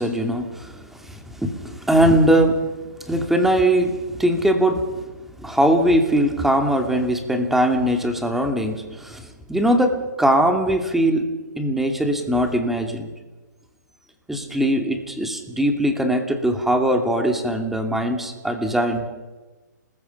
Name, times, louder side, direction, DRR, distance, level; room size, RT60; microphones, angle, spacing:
voice 1, 0.0-2.6 3.1-5.1 5.4-11.3 11.6-13.1 14.3-19.0, right 1 dB, 5° right, 5 dB, 2.6 m, -21 dB
29.5 x 21.0 x 5.6 m, 1.2 s
hypercardioid pair, 145°, 10 cm